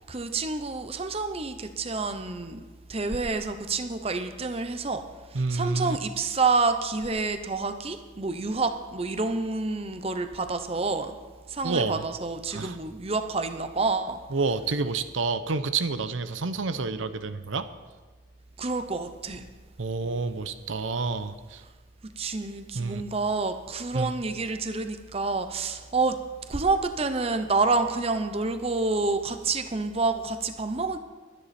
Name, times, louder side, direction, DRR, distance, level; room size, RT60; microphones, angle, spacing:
voice 1, 0.1-5.1 5.5-11.1 11.5-14.2 18.6-19.5 22.0-26.2 26.5-31.0, right 3 dB, 30° right, 8 dB, 0.8 m, -28 dB
voice 2, 5.3-6.0 11.6-12.1 12.5-12.8 14.3-17.7 19.8-21.6 22.7-23.0 23.9-24.1, right 4 dB, 75° right, 11 dB, 0.8 m, -29 dB
22.0 x 10.0 x 4.3 m, 1.3 s
head